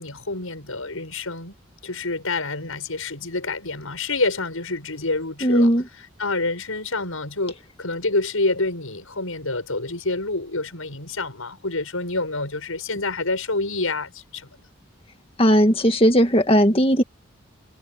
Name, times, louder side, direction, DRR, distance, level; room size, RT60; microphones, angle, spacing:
voice 1, 0.0-1.5 1.8-5.7 6.2-14.7, left 3 dB, 90° left, 7.5 m, -27 dB
voice 2, 5.4-5.9 15.4-17.0, equal, 25° left, 2.0 m, -17 dB
head